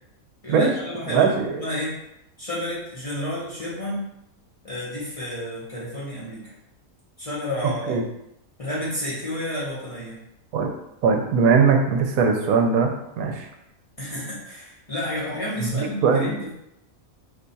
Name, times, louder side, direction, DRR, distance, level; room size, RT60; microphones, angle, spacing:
voice 1, 0.4-2.0 2.4-4.1 4.6-6.5 7.2-8.0 8.6-10.2 14.0-16.5, left 1 dB, 30° left, -8 dB, 0.7 m, -31 dB
voice 2, 1.1-1.7 7.9-8.0 10.5-10.7 11.0-12.9 13.2-13.5 15.6-16.3, right 5 dB, 85° right, 3 dB, 1.0 m, -20 dB
2.7 x 2.3 x 3.9 m, 0.83 s
omnidirectional pair, 1.5 m